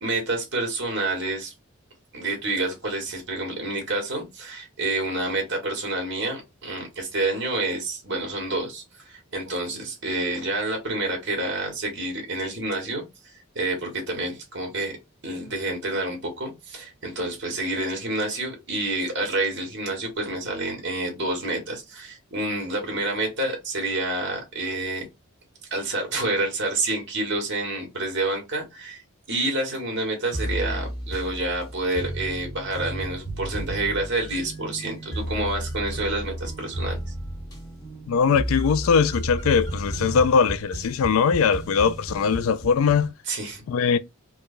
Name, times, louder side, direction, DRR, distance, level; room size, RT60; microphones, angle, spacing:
voice 1, 0.0-1.5 2.1-14.9 15.2-25.0 25.7-29.0 29.3-37.0 43.3-43.6, right 2 dB, 55° right, 1.6 m, -28 dB
sound 1, 30.3-43.1, right 1 dB, 15° left, 0.9 m, -33 dB
voice 2, 38.1-43.1 43.7-44.0, left 6 dB, 75° left, 0.3 m, -21 dB
4.7 x 2.2 x 2.5 m
head